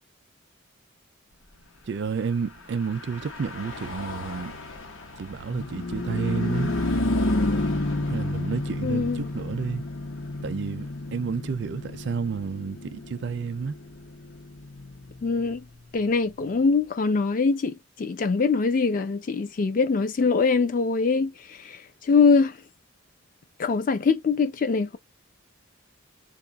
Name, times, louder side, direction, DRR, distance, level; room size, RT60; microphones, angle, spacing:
voice 1, 1.9-4.5 5.2-6.7 7.9-9.8 10.4-13.8, right 5 dB, 55° right, 0.4 m, -30 dB
Car passing by / Truck, 2.7-16.5, left 2 dB, 75° left, 1.0 m, -31 dB
voice 2, 8.8-9.3 15.2-15.6 15.9-22.6 23.6-25.0, left 4 dB, 40° left, 0.3 m, -23 dB
2.6 x 2.4 x 3.9 m
head